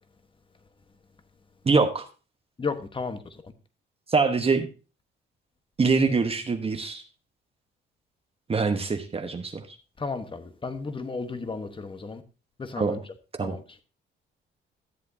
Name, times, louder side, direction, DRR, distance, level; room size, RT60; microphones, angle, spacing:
voice 1, 1.6-2.0 4.1-4.7 5.8-7.0 8.5-9.6 12.8-13.0 13.4-13.5, right 4 dB, 30° right, 1.1 m, -24 dB
voice 2, 2.6-3.2 10.0-12.2 12.6-13.0 13.4-13.6, left 4 dB, 25° left, 1.2 m, -33 dB
13.5 x 7.7 x 2.7 m
cardioid pair, 90°, 20 cm